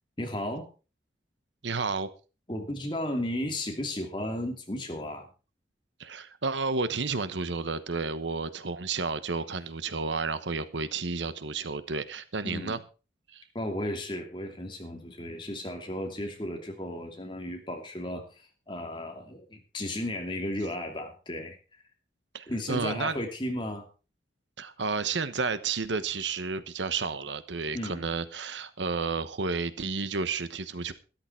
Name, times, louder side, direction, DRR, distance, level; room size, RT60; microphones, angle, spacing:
voice 1, 0.2-0.7 2.5-5.3 12.4-12.8 13.5-21.8 22.5-23.9 27.7-28.1, left 1 dB, 25° left, 2.7 m, -34 dB
voice 2, 1.6-2.1 6.0-12.8 13.3-13.4 22.3-23.2 24.6-30.9, right 4 dB, 85° right, 1.1 m, -31 dB
13.0 x 12.0 x 4.6 m
head